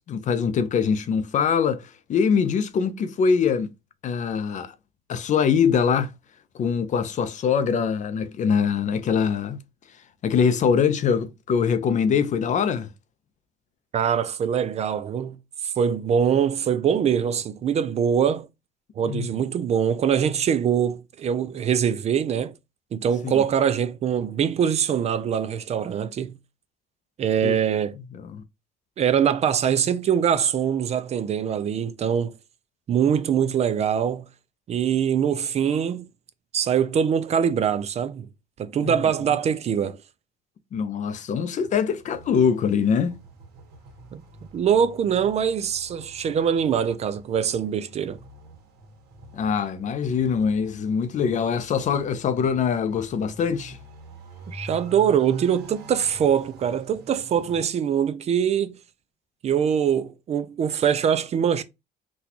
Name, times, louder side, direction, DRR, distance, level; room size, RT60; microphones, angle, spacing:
voice 1, 0.1-3.7 4.0-4.7 5.1-6.1 6.5-9.6 10.2-12.9 19.0-19.4 23.2-23.4 27.4-27.6 28.1-28.4 38.8-39.3 40.7-43.2 49.3-53.8, left 6 dB, 45° left, 0.5 m, -23 dB
voice 2, 13.9-18.5 19.0-22.5 22.9-26.4 27.2-28.0 29.0-32.3 32.9-34.3 34.7-36.1 36.5-38.3 38.6-40.0 44.1-44.2 44.5-48.2 54.5-58.8 59.4-61.6, right 8 dB, 40° right, 0.4 m, -23 dB
sound 1, 41.6-57.6, right 3 dB, 70° right, 1.1 m, -45 dB
4.0 x 2.3 x 2.8 m
cardioid pair, 110°, 17 cm